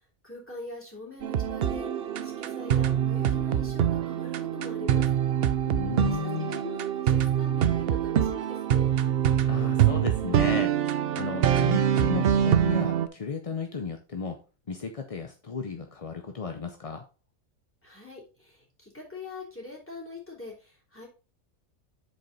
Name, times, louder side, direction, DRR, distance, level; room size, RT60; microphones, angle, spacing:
voice 1, 0.2-5.1 5.9-8.9 17.8-21.1, left 3 dB, 10° left, -3 dB, 3.1 m, -43 dB
sound 1, 1.2-13.1, right 10 dB, 60° right, 0.7 m, -25 dB
voice 2, 5.6-6.6 9.4-10.7 11.1-14.4 14.7-17.0, left 5 dB, 40° left, 5 dB, 0.5 m, -34 dB
7.5 x 5.5 x 4.0 m, 0.33 s
omnidirectional pair, 1.4 m